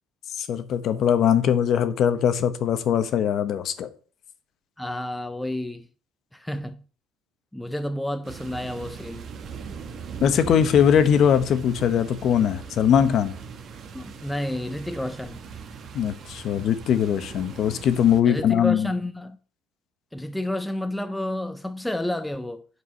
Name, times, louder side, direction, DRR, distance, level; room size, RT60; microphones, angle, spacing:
voice 1, 0.4-3.9 10.2-13.3 15.9-18.9, left 8 dB, 45° left, 0.9 m, -21 dB
voice 2, 4.8-5.9 6.3-6.8 7.5-9.3 13.9-15.4 18.3-19.4 20.1-22.7, left 1 dB, 5° left, 0.4 m, -30 dB
sound 1, 8.2-18.2, right 6 dB, 40° right, 1.1 m, -39 dB
8.2 x 4.7 x 5.5 m
cardioid pair, 155°, 0 cm